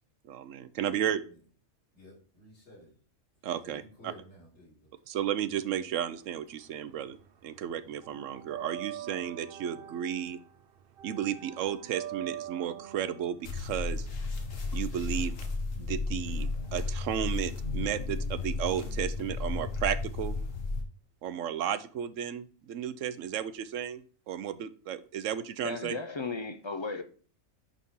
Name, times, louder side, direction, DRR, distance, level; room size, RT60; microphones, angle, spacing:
voice 1, 0.3-1.2 3.4-3.8 5.1-7.2 7.4-10.4 11.0-14.1 14.7-15.3 15.8-20.4 21.2-26.0, right 9 dB, 75° right, 1.0 m, -33 dB
voice 2, 1.9-2.9 3.6-4.9, equal, 60° left, 3.5 m, -53 dB
sound 1, 6.2-7.3 7.5-15.4, right 11 dB, 60° right, 0.7 m, -44 dB
sound 2, 13.4-20.8, left 3 dB, 80° left, 1.7 m, -33 dB
voice 3, 25.6-27.0, left 4 dB, 40° left, 0.4 m, -35 dB
10.0 x 4.3 x 3.7 m
omnidirectional pair, 1.3 m